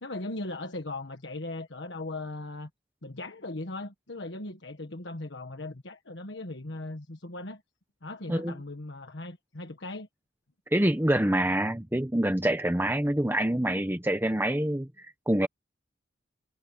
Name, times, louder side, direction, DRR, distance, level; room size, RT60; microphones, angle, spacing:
voice 1, 0.0-2.7 3.0-7.6 8.0-10.1, left 2 dB, 70° left, 1.5 m, -38 dB
voice 2, 10.7-15.5, right 1 dB, 10° right, 1.0 m, -26 dB
head